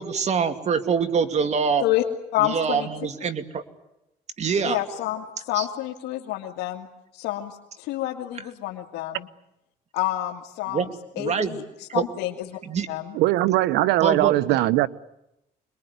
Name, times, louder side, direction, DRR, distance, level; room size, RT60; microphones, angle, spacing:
voice 1, 0.0-1.8 2.4-3.6 4.4-4.8 5.5-5.7 10.7-10.9 11.2-11.6 11.9-12.0 12.6-12.9 14.0-14.3, right 6 dB, 40° right, 2.5 m, -24 dB
voice 2, 2.3-2.9 4.6-6.9 7.1-9.3 9.9-11.9 12.2-12.6 12.9-13.2, left 15 dB, 90° left, 2.2 m, -29 dB
voice 3, 13.1-14.9, right 16 dB, 90° right, 1.0 m, -20 dB
26.0 x 22.0 x 9.6 m
cardioid pair, 110°, 17 cm